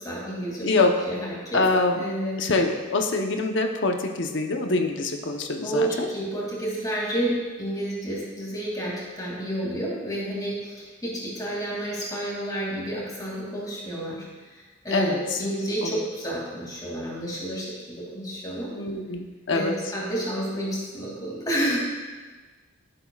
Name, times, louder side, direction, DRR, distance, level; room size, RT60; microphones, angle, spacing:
voice 1, 0.0-1.7 1.9-2.4 5.6-14.2 14.8-18.7 19.5-21.8, right 1 dB, 20° left, -5 dB, 2.5 m, -30 dB
voice 2, 0.6-1.0 1.5-2.0 2.4-6.1 14.9-15.4 15.8-15.9 18.8-19.7, left 3 dB, 65° left, 3 dB, 0.9 m, -24 dB
15.5 x 7.9 x 2.4 m, 1.3 s
head